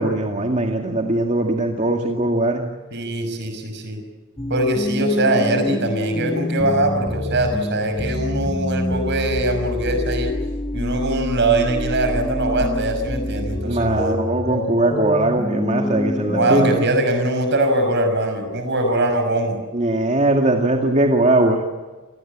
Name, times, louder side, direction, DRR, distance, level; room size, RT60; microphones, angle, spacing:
voice 1, 0.0-2.6 13.6-16.9 19.7-21.6, right 2 dB, 30° right, 2 dB, 2.1 m, -20 dB
voice 2, 2.9-4.0 4.5-10.3 10.7-14.2 16.4-19.6, right 1 dB, 50° right, 7 dB, 5.9 m, -22 dB
sound 1, 4.4-16.8, left 1 dB, 15° left, 0.9 m, -26 dB
28.5 x 20.0 x 8.8 m, 1.3 s
head